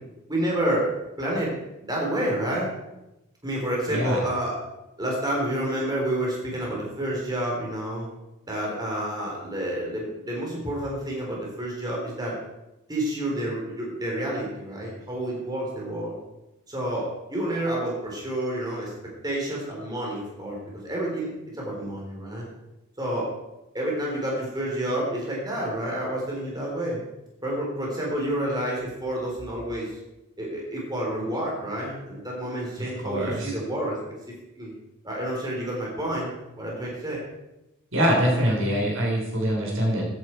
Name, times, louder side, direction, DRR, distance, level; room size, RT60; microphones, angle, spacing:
voice 1, 0.3-0.9 1.2-1.5 1.8-2.7 3.4-4.6 5.0-8.1 8.5-12.4 12.9-16.1 16.7-18.9 19.2-20.6 20.8-22.5 23.0-23.3 23.7-27.0 27.4-29.9 30.4-34.0 34.6-34.7 35.0-37.2, right 1 dB, 20° right, -3 dB, 3.9 m, -29 dB
voice 2, 3.9-4.2 33.0-33.5 37.9-40.1, equal, 65° right, -1 dB, 4.3 m, -24 dB
14.0 x 10.5 x 4.6 m, 0.96 s
head